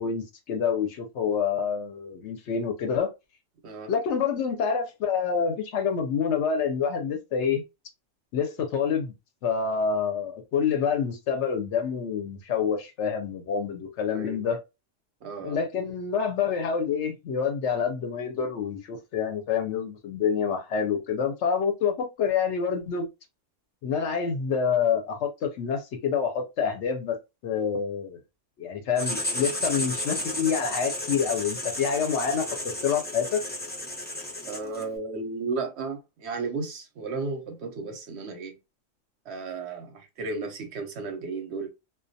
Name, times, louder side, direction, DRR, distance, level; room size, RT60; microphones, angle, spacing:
voice 1, 0.0-3.1 3.9-7.6 8.3-9.1 9.4-14.6 15.4-23.1 23.8-27.2 27.4-28.2 28.6-32.5 32.8-33.4, left 6 dB, 70° left, 0.8 m, -27 dB
voice 2, 14.1-14.6 15.2-15.6 34.5-38.5 39.3-41.7, right 4 dB, 65° right, 0.8 m, -34 dB
Writing, 29.0-34.9, left 1 dB, 15° left, 0.4 m, -33 dB
2.2 x 2.2 x 2.6 m
omnidirectional pair, 1.3 m